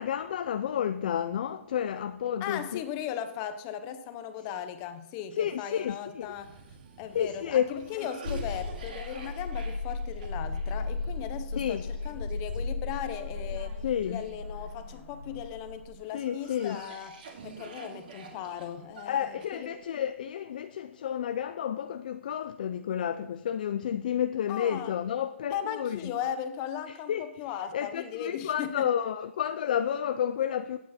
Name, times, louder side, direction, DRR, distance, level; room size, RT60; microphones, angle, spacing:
voice 1, 0.0-2.8 5.4-6.3 7.1-7.6 7.9-8.1 11.6-11.8 13.8-14.2 16.1-16.8 19.1-26.0 27.1-27.3 27.7-30.8, left 9 dB, 35° left, 0.4 m, -30 dB
voice 2, 2.4-6.6 7.0-13.8 14.1-17.2 17.4-19.7 24.5-24.9 25.5-28.9, left 9 dB, 20° left, 0.8 m, -37 dB
Cough, 6.2-15.4 16.0-19.9, right 4 dB, 40° right, 2.2 m, -49 dB
sound 1, 8.2-15.9, left 3 dB, 70° left, 1.0 m, -35 dB
16.0 x 9.2 x 4.3 m
hypercardioid pair, 175°, 8 cm